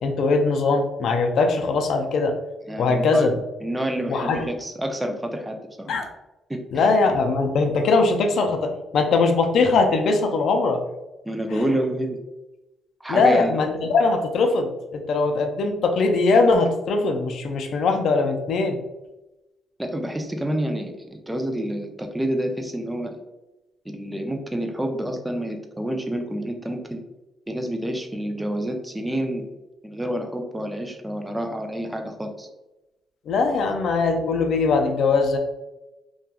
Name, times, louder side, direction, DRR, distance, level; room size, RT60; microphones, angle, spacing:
voice 1, 0.0-2.3 2.8-3.3 4.1-4.5 5.9-6.1 6.7-10.8 11.5-11.6 13.1-18.8 33.3-35.4, left 3 dB, 65° left, 4 dB, 0.4 m, -21 dB
voice 2, 2.7-3.3 3.6-5.9 6.5-6.9 11.3-12.2 13.0-13.5 19.8-23.2 23.9-27.0 27.5-29.4 29.8-32.5, right 1 dB, 10° right, 4 dB, 0.4 m, -28 dB
2.8 x 2.3 x 2.3 m, 1.0 s
cardioid pair, 90°, 0 cm